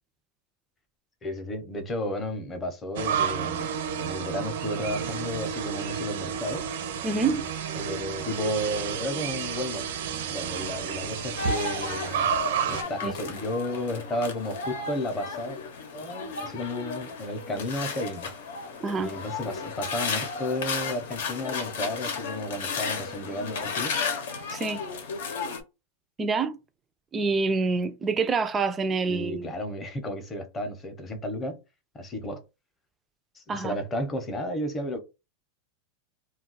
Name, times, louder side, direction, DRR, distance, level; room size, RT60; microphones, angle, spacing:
voice 1, 1.2-6.6 7.8-9.9 10.3-12.3 12.7-15.6 15.9-18.3 19.0-24.0 29.1-31.6 31.9-32.4 33.4-35.0, left 1 dB, 20° left, 0.6 m, -33 dB
sound 1, 3.0-12.8, right 8 dB, 80° right, 0.6 m, -31 dB
voice 2, 7.0-7.4 13.0-13.1 18.8-19.1 24.5-24.8 26.2-26.6 27.1-29.5 33.5-33.8, right 4 dB, 15° right, 0.3 m, -26 dB
sound 2, 11.4-25.6, left 5 dB, 85° left, 0.7 m, -34 dB
2.3 x 2.2 x 3.9 m
supercardioid pair, 160°, 0 cm